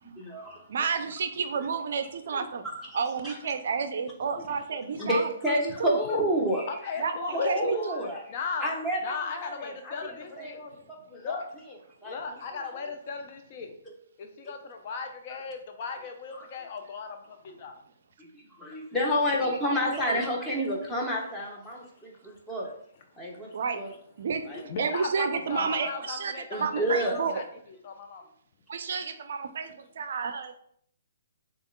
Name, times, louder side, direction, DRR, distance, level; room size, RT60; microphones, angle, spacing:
voice 1, 0.0-0.7 2.3-2.5 3.2-3.4 5.0-7.0 7.3-8.3 8.6-11.4 12.0-12.8 16.3-16.5 18.2-22.7 23.2-23.9 24.5-24.6 25.5-25.6 26.5-27.3, equal, 10° left, -3 dB, 1.0 m, -30 dB
voice 2, 0.7-2.6 2.9-6.0 7.0-8.0 19.6-20.2 23.5-23.8 24.2-24.4 24.8-27.4 28.7-30.5, right 5 dB, 60° right, 9 dB, 0.4 m, -31 dB
voice 3, 6.7-7.9 8.3-8.7 9.0-10.9 11.2-11.5 12.0-13.7 14.2-17.7 23.4-23.5 24.5-28.2, left 5 dB, 45° left, 4 dB, 0.5 m, -37 dB
6.9 x 2.3 x 2.2 m, 0.65 s
hypercardioid pair, 130°, 0 cm